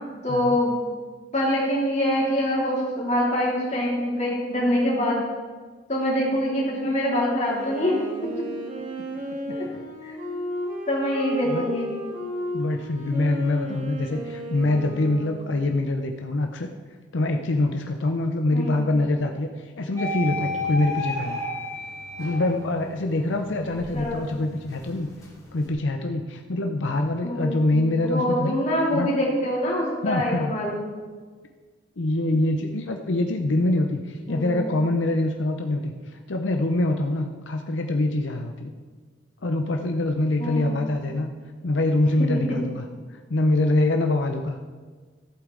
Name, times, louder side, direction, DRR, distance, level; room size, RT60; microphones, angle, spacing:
voice 1, 0.2-0.8 1.3-5.2 5.9-8.0 8.2-8.5 9.5-9.7 10.0-10.2 10.9-11.9 18.5-18.8 23.9-24.2 27.2-30.8 34.3-34.7 40.4-40.7, left 1 dB, 35° left, -4 dB, 3.0 m, -25 dB
Wind instrument woodwind instrument, 7.5-15.8, equal, 45° right, 1.7 m, -34 dB
voice 2, 12.5-16.7 17.1-21.4 22.2-25.1 25.5-28.6 28.9-29.1 30.0-30.5 32.0-38.7 39.4-41.3 41.6-42.9 43.3-44.6, left 2 dB, 85° left, 4 dB, 0.7 m, -24 dB
sound 1, 20.0-22.8 23.3-25.7, left 1 dB, 20° left, 1.6 m, -32 dB
14.0 x 8.2 x 3.9 m, 1.5 s
head